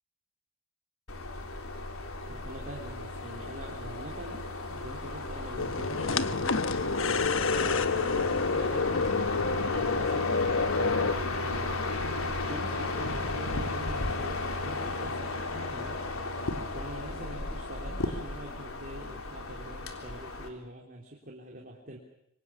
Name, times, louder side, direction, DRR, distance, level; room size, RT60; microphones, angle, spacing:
sound 1, 1.1-20.5, left 2 dB, 85° left, 3.5 m, -34 dB
voice 1, 2.3-6.7 7.0-8.9 9.5-11.8 12.4-15.3 15.7-16.0 16.7-22.0, right 1 dB, 40° right, -1 dB, 3.6 m, -44 dB
sound 2, 5.6-11.1, left 4 dB, 70° left, 1.2 m, -28 dB
sound 3, 15.5-15.8 17.1-17.4, left 1 dB, 45° left, 6.7 m, -49 dB
26.0 x 25.5 x 7.3 m, 0.77 s
head